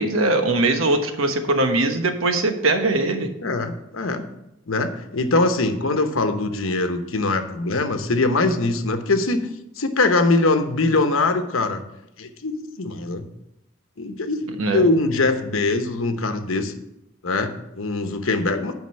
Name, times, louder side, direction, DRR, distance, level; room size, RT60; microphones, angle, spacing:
voice 1, 0.0-3.3 14.6-14.9, right 2 dB, 90° right, 6 dB, 1.2 m, -21 dB
voice 2, 3.4-4.2 4.7-9.4 9.8-11.8 12.2-13.2 14.0-16.7 17.2-18.7, left 2 dB, 80° left, 8 dB, 1.0 m, -22 dB
9.5 x 5.2 x 6.5 m, 0.85 s
head